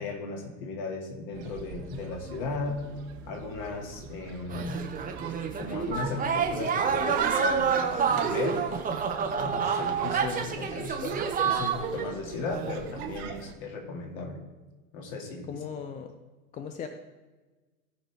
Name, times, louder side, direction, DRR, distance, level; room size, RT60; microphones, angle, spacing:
voice 1, 0.0-2.9 3.3-4.8 5.6-8.7 9.3-14.4 14.9-15.7, left 3 dB, 45° left, 1 dB, 2.3 m, -36 dB
sound 1, 1.3-13.5, right 8 dB, 50° right, 1.4 m, -42 dB
sound 2, 4.5-12.1 12.5-13.1, right 6 dB, 20° right, 1.1 m, -28 dB
voice 2, 15.5-16.1 16.5-16.9, left 7 dB, 20° left, 7 dB, 0.5 m, -37 dB
16.5 x 5.6 x 3.5 m, 1.2 s
figure-of-eight pair, 85°, 44 cm